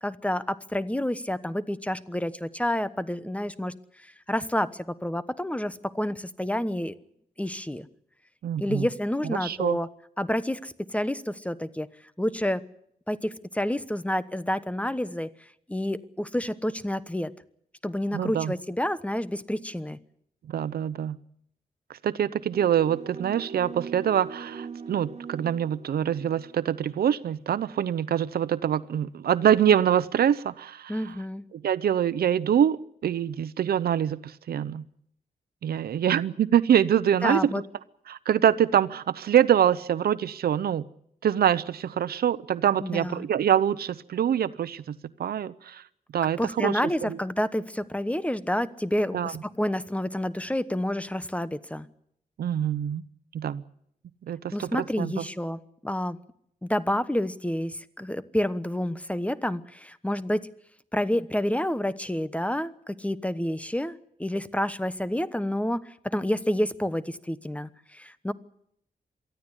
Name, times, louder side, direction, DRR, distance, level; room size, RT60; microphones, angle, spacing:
voice 1, 0.0-6.9 7.4-7.9 8.6-9.9 10.2-11.9 12.2-12.6 13.1-15.3 15.7-17.3 17.8-20.0 30.9-31.4 37.2-37.6 42.8-43.3 46.4-51.9 54.5-56.2 56.6-60.5 60.9-68.3, left 1 dB, 10° left, 15 dB, 1.1 m, -29 dB
voice 2, 8.4-8.8 9.4-9.8 18.1-18.5 20.5-21.2 22.0-30.9 31.6-32.8 33.0-34.8 35.6-37.4 38.1-40.8 41.2-45.8 46.1-47.2 49.1-49.3 52.4-53.0 53.3-53.6 54.3-55.2, right 9 dB, 85° right, 16 dB, 0.8 m, -25 dB
sound 1, 22.5-27.0, right 5 dB, 45° right, 1.2 m, -41 dB
23.5 x 14.0 x 9.8 m, 0.72 s
cardioid pair, 70°, 15 cm